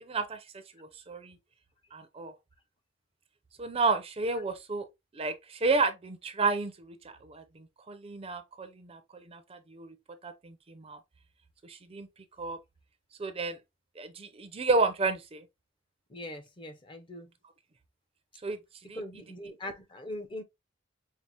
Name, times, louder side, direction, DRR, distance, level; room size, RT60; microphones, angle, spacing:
voice 1, 0.0-1.4 1.9-2.4 3.6-4.9 5.1-10.0 10.2-11.0 11.6-12.1 12.4-12.6 13.2-13.6 14.0-15.4 18.4-18.6 18.9-19.0, right 3 dB, 30° right, 0.5 m, -32 dB
voice 2, 16.1-17.3 19.0-20.4, left 1 dB, 25° left, 0.5 m, -41 dB
5.4 x 2.0 x 2.8 m
head